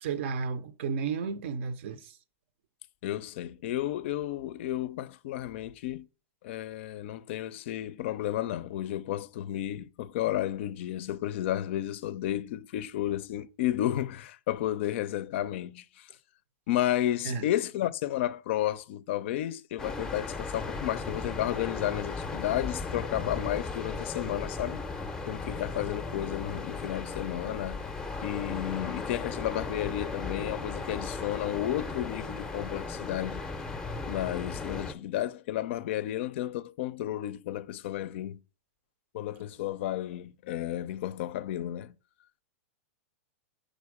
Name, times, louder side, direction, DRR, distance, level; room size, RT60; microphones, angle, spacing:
voice 1, 0.0-2.1 17.2-17.4, right 5 dB, 60° right, 0.6 m, -33 dB
voice 2, 3.0-6.1 6.4-16.1 16.7-24.8 25.3-27.8 28.2-33.4 34.1-38.4 39.1-42.0, left 13 dB, 60° left, 0.4 m, -32 dB
sound 1, 19.8-34.9, left 3 dB, 10° left, 0.5 m, -36 dB
5.1 x 4.3 x 4.7 m
hypercardioid pair, 135°, 7 cm